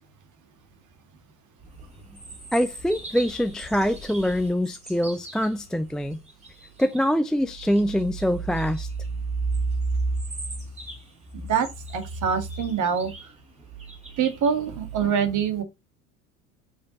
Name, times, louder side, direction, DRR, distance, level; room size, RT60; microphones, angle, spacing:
sound 1, 1.6-7.1 7.4-15.1, right 3 dB, 15° right, 3.0 m, -34 dB
voice 1, 2.5-6.2 6.8-8.9, equal, ahead, 0.4 m, -24 dB
voice 2, 11.3-13.1 14.2-15.6, right 7 dB, 40° right, 1.8 m, -25 dB
6.8 x 5.1 x 4.0 m
hypercardioid pair, 75°, 45 cm